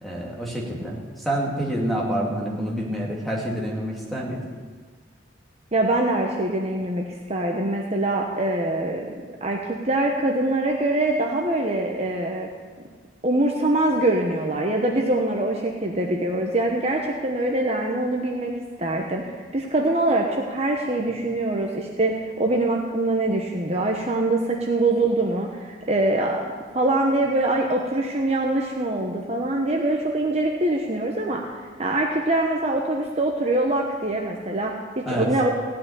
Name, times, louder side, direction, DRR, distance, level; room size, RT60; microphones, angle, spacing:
voice 1, 0.0-4.4 35.1-35.3, right 1 dB, ahead, -4 dB, 2.3 m, -27 dB
voice 2, 5.7-9.1 9.4-9.6 9.8-12.5 13.2-18.5 18.8-26.4 26.7-31.4 31.8-35.5, right 2 dB, 35° right, 0 dB, 1.0 m, -23 dB
16.0 x 5.8 x 10.0 m, 1.5 s
head